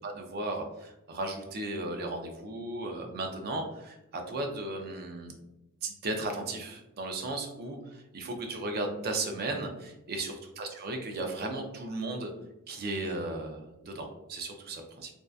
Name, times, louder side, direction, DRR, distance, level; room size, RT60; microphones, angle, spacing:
voice 1, 0.0-5.4 5.8-12.3 12.7-15.1, right 2 dB, 45° right, 3 dB, 0.4 m, -35 dB
2.6 x 2.2 x 2.3 m, 0.91 s
head